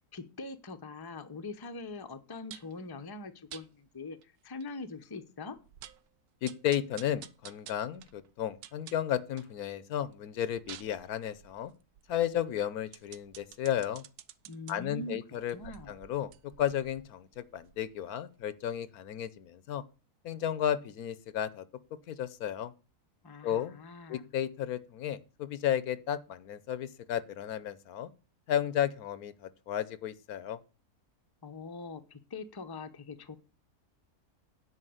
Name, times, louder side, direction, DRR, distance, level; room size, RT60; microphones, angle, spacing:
voice 1, 0.1-4.2 4.4-5.6 14.5-15.9 23.2-24.3 31.4-33.4, left 3 dB, 20° left, 0.7 m, -43 dB
sound 1, 2.5-2.8 3.5-3.7 4.2-4.3 4.6-4.7 5.1-5.2 5.6-6.1 6.5-9.6 10.0-14.7 15.4-18.1 18.4-18.5, right 11 dB, 85° right, 1.2 m, -51 dB
voice 2, 6.4-11.7 12.1-14.0 14.7-15.6 15.9-19.8 20.2-21.7 22.1-22.7 23.4-23.7 24.1-28.1 28.5-30.6, left 10 dB, 75° left, 1.2 m, -33 dB
9.8 x 5.0 x 7.9 m
omnidirectional pair, 1.6 m